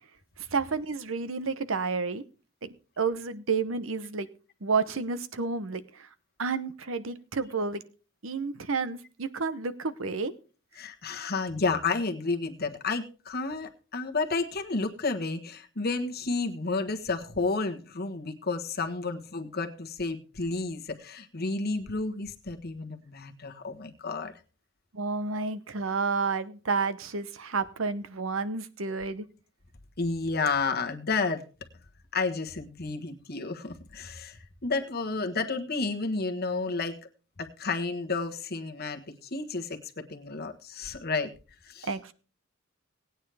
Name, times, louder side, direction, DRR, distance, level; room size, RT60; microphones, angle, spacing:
voice 1, 0.4-2.2 2.6-2.7 3.0-4.3 4.6-6.1 6.4-7.8 8.2-10.3 24.9-29.3 41.8-42.1, right 4 dB, 75° right, 13 dB, 0.9 m, -30 dB
voice 2, 10.8-24.3 25.3-25.5 30.0-31.4 32.1-37.0 37.4-41.3 41.6-41.9, left 3 dB, 50° left, 5 dB, 1.4 m, -31 dB
18.0 x 9.2 x 3.4 m, 0.36 s
head